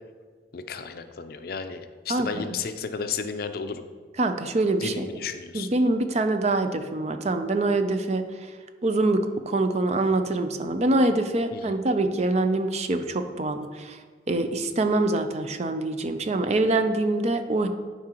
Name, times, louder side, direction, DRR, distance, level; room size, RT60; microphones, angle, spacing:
voice 1, 0.5-3.8 4.8-5.7 11.5-11.8, left 5 dB, 55° left, 9 dB, 0.5 m, -33 dB
voice 2, 2.1-2.5 4.2-5.1 5.5-8.5 8.8-14.0 14.3-17.7, right 2 dB, 40° right, 8 dB, 0.5 m, -25 dB
11.0 x 4.9 x 3.0 m, 1.5 s
head